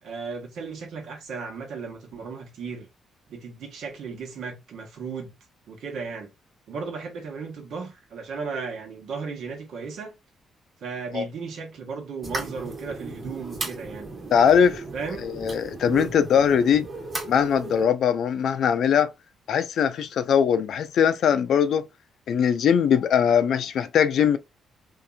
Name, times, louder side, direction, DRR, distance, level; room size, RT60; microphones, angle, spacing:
voice 1, 0.0-2.9 3.3-5.3 5.7-6.3 6.7-10.1 10.8-14.1 14.9-15.3 15.9-16.1, right 5 dB, 75° right, 1.2 m, -35 dB
sound 1, 12.2-17.8, right 2 dB, 30° right, 1.0 m, -36 dB
voice 2, 14.3-14.8 15.2-16.9 17.3-19.1 19.5-21.9 22.3-24.4, left 8 dB, 70° left, 0.4 m, -21 dB
2.8 x 2.5 x 2.2 m
cardioid pair, 90°, 0 cm